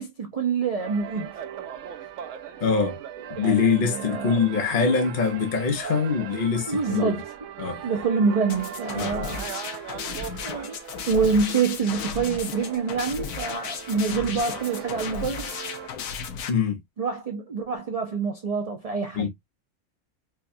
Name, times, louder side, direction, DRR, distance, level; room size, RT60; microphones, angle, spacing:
voice 1, 0.0-1.3 2.0-2.1 2.5-2.6 3.4-4.4 6.7-7.2 7.8-9.4 10.4-10.8 11.1-15.6 17.0-19.3, right 5 dB, 50° right, 0.4 m, -26 dB
sound 1, 0.8-15.9, right 9 dB, 65° right, 0.9 m, -39 dB
voice 2, 2.6-3.0 3.4-7.2 7.6-7.9 8.9-9.2 16.5-16.8 19.1-19.3, left 5 dB, 45° left, 0.8 m, -24 dB
sound 2, 8.5-16.5, left 6 dB, 75° left, 1.1 m, -35 dB
4.7 x 2.3 x 2.6 m
omnidirectional pair, 1.5 m